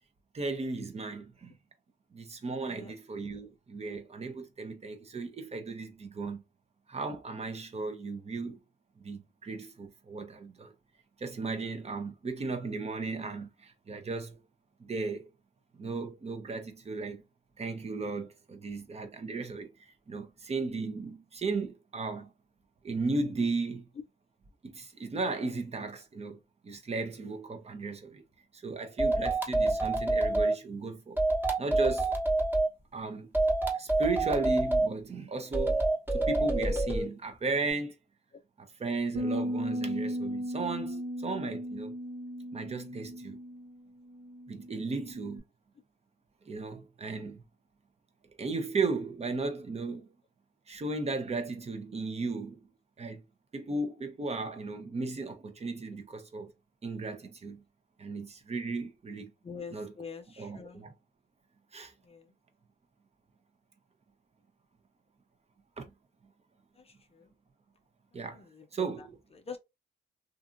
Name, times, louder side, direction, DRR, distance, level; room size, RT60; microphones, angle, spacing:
voice 1, 0.3-1.5 2.1-6.4 6.9-8.6 9.0-10.7 11.2-14.4 14.8-15.3 15.7-17.2 17.6-22.3 22.8-23.9 24.6-28.2 28.5-31.2 31.6-32.2 32.9-33.3 33.7-35.8 36.1-38.0 38.6-41.9 42.5-43.4 44.5-45.4 46.5-47.4 48.4-50.1 50.7-52.6 53.0-53.2 53.5-56.5 56.8-57.6 58.0-59.3 59.7-59.9 60.4-60.9 61.7-61.9 65.8-65.9 68.1-68.4 68.7-69.2, right 3 dB, 30° right, 0.7 m, -35 dB
sound 1, 29.0-30.5 31.2-32.7 33.3-34.9 35.5-37.0, right 2 dB, 10° right, 1.0 m, -27 dB
sound 2, 39.2-45.4, equal, 85° right, 1.1 m, -36 dB
voice 2, 59.4-60.8 62.0-62.3 66.8-67.3 68.3-69.1 69.3-69.6, left 5 dB, 30° left, 0.5 m, -45 dB
2.7 x 2.5 x 2.5 m
cardioid pair, 90°, 20 cm